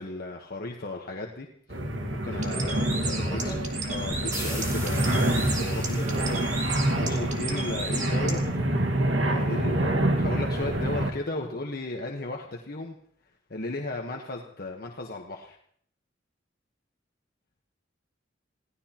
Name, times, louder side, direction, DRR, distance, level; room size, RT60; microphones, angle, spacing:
voice 1, 0.0-3.5 3.9-6.0 7.0-8.4 9.2-13.0 13.5-15.6, left 2 dB, 55° left, 1 dB, 1.2 m, -35 dB
sound 1, 1.7-11.1, right 1 dB, 80° right, 1.8 m, -27 dB
Bird, 2.3-8.4, right 3 dB, 40° right, 2.6 m, -36 dB
voice 2, 3.2-3.6 4.1-4.2 5.9-6.4 8.4-8.8 11.3-11.5, equal, 20° left, -4 dB, 7.5 m, -39 dB
sound 2, 4.3-7.9, equal, 15° right, 3.4 m, -41 dB
27.5 x 17.0 x 3.0 m, 0.63 s
head